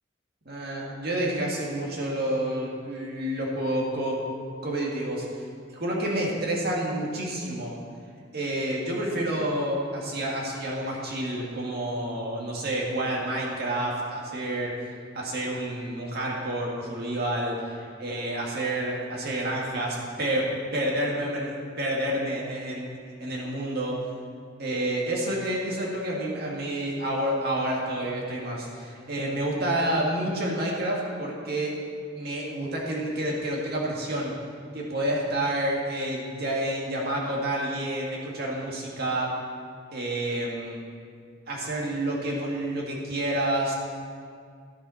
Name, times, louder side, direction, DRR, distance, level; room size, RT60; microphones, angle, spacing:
voice 1, 0.5-4.2 4.6-5.3 5.7-7.8 8.3-14.7 15.1-24.0 24.6-31.7 32.2-34.4 34.7-39.3 39.9-40.8 41.5-43.7, right 1 dB, 55° right, -3 dB, 2.0 m, -29 dB
11.5 x 7.0 x 5.6 m, 2.2 s
head